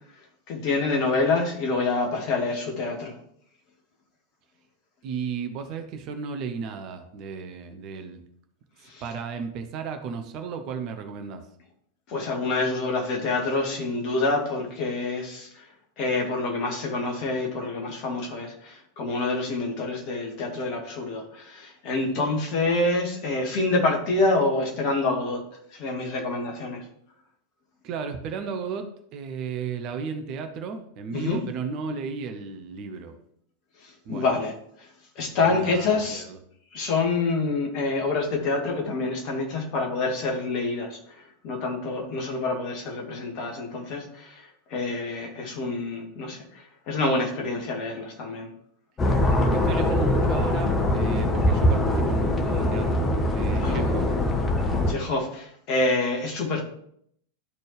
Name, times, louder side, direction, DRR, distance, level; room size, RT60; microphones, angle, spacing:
voice 1, 0.5-3.1 8.9-9.0 12.1-15.5 16.0-25.4 25.7-26.8 31.1-31.4 34.1-34.5 35.2-36.2 36.7-41.0 41.4-44.4 44.7-46.4 46.9-48.5 53.6-53.9 54.9-56.6, left 3 dB, 40° left, 1 dB, 2.0 m, -27 dB
voice 2, 5.0-8.2 8.8-11.4 27.8-33.2 34.0-34.4 35.4-36.4 49.4-54.1, right 5 dB, 40° right, 7 dB, 0.9 m, -34 dB
sound 1, 49.0-54.9, left 1 dB, 20° left, 1.1 m, -22 dB
12.0 x 4.3 x 3.3 m, 0.68 s
figure-of-eight pair, 90°, 0 cm